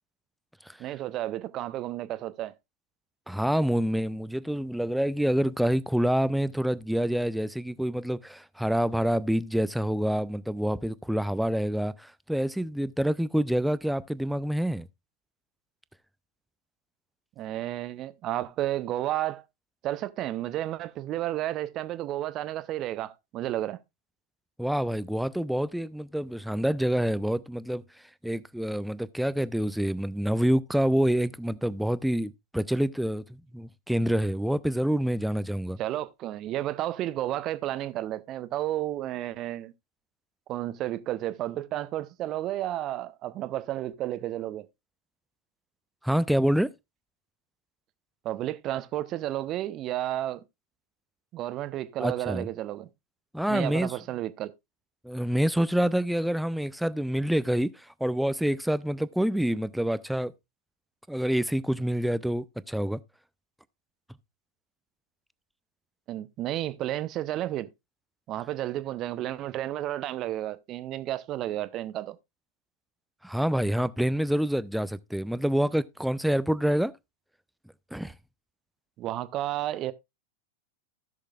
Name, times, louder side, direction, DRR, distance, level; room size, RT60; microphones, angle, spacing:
voice 1, 0.8-2.5 17.4-19.4 19.8-23.8 35.8-39.7 40.5-44.6 48.2-50.4 51.3-52.9 53.5-54.5 66.1-67.7 68.3-72.2 79.0-79.9, right 14 dB, 35° right, 0.7 m, -32 dB
voice 2, 3.3-14.9 24.6-27.8 28.2-35.8 46.0-46.7 52.0-52.5 53.3-53.9 55.0-60.3 61.1-63.0 73.2-76.9 77.9-78.1, equal, ahead, 0.5 m, -27 dB
16.0 x 6.5 x 2.4 m
figure-of-eight pair, 90°, 0 cm